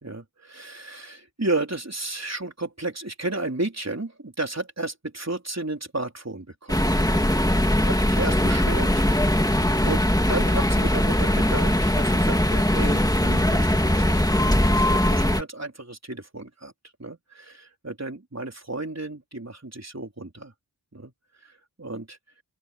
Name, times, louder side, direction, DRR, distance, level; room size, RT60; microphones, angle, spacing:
voice 1, 0.0-6.9 7.9-9.1 9.8-16.7 17.0-20.5 20.9-21.1 21.4-22.2, right 2 dB, 40° right, 3.9 m, -33 dB
sound 1, 6.7-15.4, left 1 dB, 10° left, 2.1 m, -21 dB
open air
wide cardioid pair, 45°, 42 cm